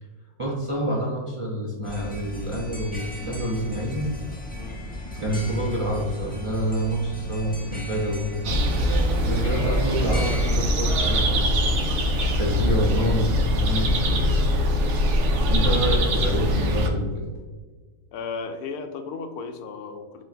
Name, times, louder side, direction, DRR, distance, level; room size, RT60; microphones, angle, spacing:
voice 1, 0.4-4.1 5.2-8.4 9.2-11.8 12.4-14.3 15.5-17.2, equal, 40° right, -4 dB, 0.4 m, -27 dB
sound 1, 1.8-10.6, left 1 dB, 10° left, 0.6 m, -36 dB
voice 2, 4.5-4.8 12.5-12.6 15.1-15.4 18.1-20.2, left 4 dB, 90° left, 7 dB, 1.1 m, -35 dB
sound 2, 8.4-16.9, equal, 60° right, 0.8 m, -22 dB
7.0 x 2.9 x 2.6 m, 1.4 s
omnidirectional pair, 1.5 m